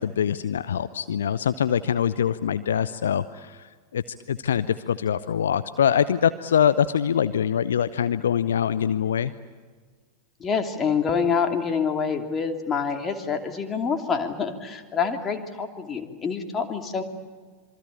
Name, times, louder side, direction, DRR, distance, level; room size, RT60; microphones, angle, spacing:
voice 1, 0.0-4.0 4.3-9.3, left 8 dB, 65° left, 13 dB, 0.8 m, -24 dB
voice 2, 10.4-17.0, left 6 dB, 20° left, 5 dB, 2.9 m, -26 dB
27.0 x 24.0 x 8.7 m, 1.5 s
figure-of-eight pair, 90°, 0 cm